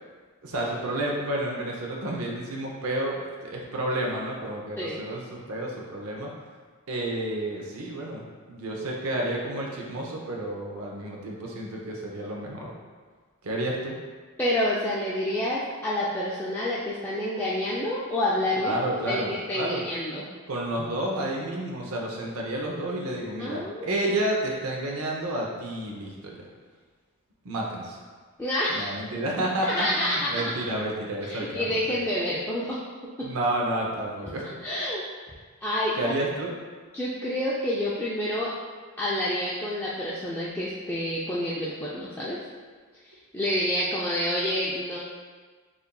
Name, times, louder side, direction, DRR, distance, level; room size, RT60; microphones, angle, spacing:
voice 1, 0.4-6.3 6.9-12.7 13.4-14.0 18.6-19.8 20.5-26.5 27.4-28.0 28.7-32.0 33.2-34.5 36.0-36.5, right 1 dB, 75° right, -1 dB, 0.6 m, -30 dB
voice 2, 14.4-18.8 19.1-20.3 23.4-23.9 28.4-29.0 29.7-30.3 31.3-32.8 33.2-33.3 34.6-35.1 35.6-36.1 36.9-38.5 39.0-42.4 43.0-45.0, left 1 dB, 10° left, -8 dB, 0.3 m, -28 dB
6.6 x 2.5 x 2.2 m, 1.5 s
head